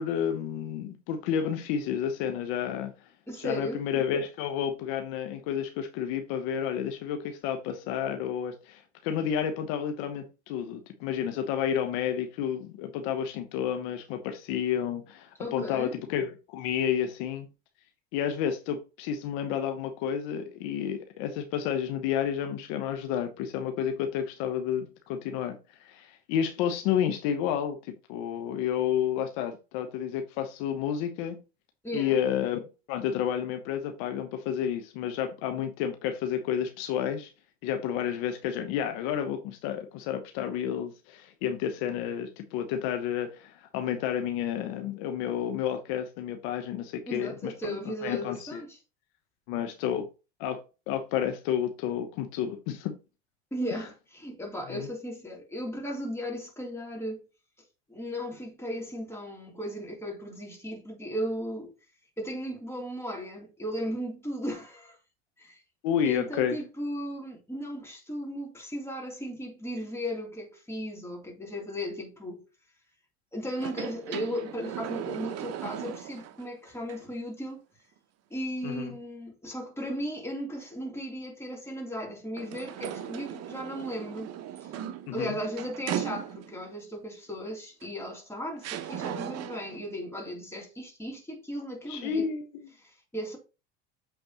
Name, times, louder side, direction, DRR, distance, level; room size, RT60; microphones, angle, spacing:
voice 1, 0.0-2.9 3.4-17.5 18.1-31.4 31.9-37.3 37.6-47.8 48.0-48.6 49.5-50.1 50.4-52.9 54.7-54.9 65.8-66.6 78.6-78.9 85.1-85.4 91.9-92.7, left 9 dB, 70° left, 1.0 m, -31 dB
voice 2, 3.3-3.8 15.4-15.9 31.8-32.2 47.1-48.8 53.5-57.2 57.9-61.7 62.2-65.0 65.4-65.6 66.0-72.4 73.3-77.6 78.3-84.3 84.6-84.7 85.1-92.3 92.8-93.4, equal, 5° left, 3.0 m, -36 dB
sound 1, 73.5-76.5 76.9-77.0 82.4-86.7 87.8-87.9 88.6-89.8, right 10 dB, 50° right, 0.8 m, -37 dB
7.9 x 4.3 x 2.9 m
hypercardioid pair, 90°, 34 cm